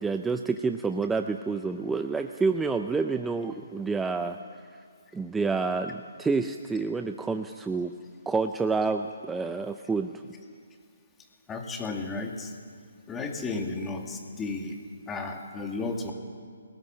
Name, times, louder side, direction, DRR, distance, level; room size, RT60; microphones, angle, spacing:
voice 1, 0.0-4.4 5.1-7.9 8.3-10.1, right 4 dB, 5° right, 7 dB, 0.5 m, -28 dB
voice 2, 11.5-12.5 13.1-14.8 15.1-16.1, left 3 dB, 10° left, 3 dB, 2.0 m, -33 dB
29.0 x 19.5 x 7.6 m, 2.1 s
hypercardioid pair, 165°, 0 cm